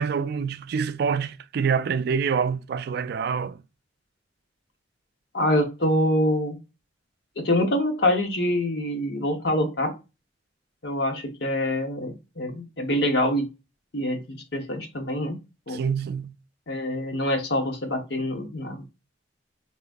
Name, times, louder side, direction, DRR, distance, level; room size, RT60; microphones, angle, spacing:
voice 1, 0.0-3.6 15.7-16.3, right 6 dB, 60° right, 0.3 m, -26 dB
voice 2, 5.3-6.6 7.4-9.9 10.8-13.4 13.9-15.4 15.7-15.8 16.7-18.8, left 1 dB, 65° left, 1.1 m, -25 dB
4.7 x 3.0 x 2.5 m
head